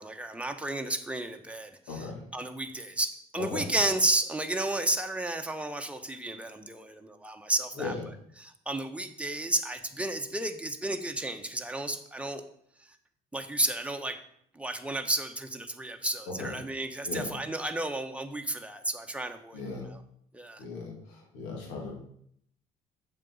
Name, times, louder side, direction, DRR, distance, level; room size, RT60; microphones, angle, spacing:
voice 1, 0.0-2.0 2.3-7.9 8.4-12.4 13.3-14.2 14.5-19.6 19.9-20.0 20.3-20.6, right 2 dB, 5° right, 5 dB, 1.2 m, -32 dB
voice 2, 1.9-2.2 3.4-3.7 7.8-8.0 16.3-16.5 17.1-17.3 19.5-19.9 20.6-21.9, left 4 dB, 80° left, 0 dB, 2.4 m, -37 dB
7.3 x 5.2 x 7.1 m, 0.68 s
hypercardioid pair, 50°, 19 cm